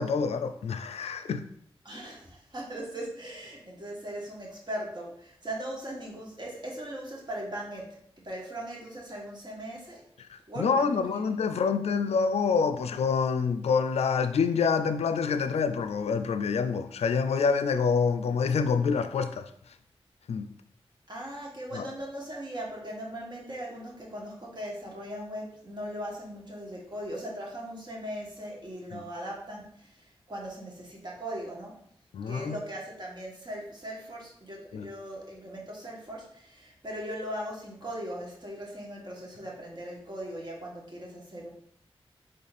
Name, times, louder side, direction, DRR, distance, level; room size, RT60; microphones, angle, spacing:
voice 1, 0.0-1.5 10.2-19.5 20.3-20.5 21.7-21.9 28.9-29.0 32.1-32.6 34.7-34.9, left 5 dB, 80° left, 0.4 m, -27 dB
voice 2, 1.8-8.0 8.2-10.0 10.5-11.3 21.1-31.8 32.3-41.5, right 1 dB, 45° right, 1.7 m, -39 dB
4.1 x 3.2 x 4.1 m
cardioid pair, 45°, 10 cm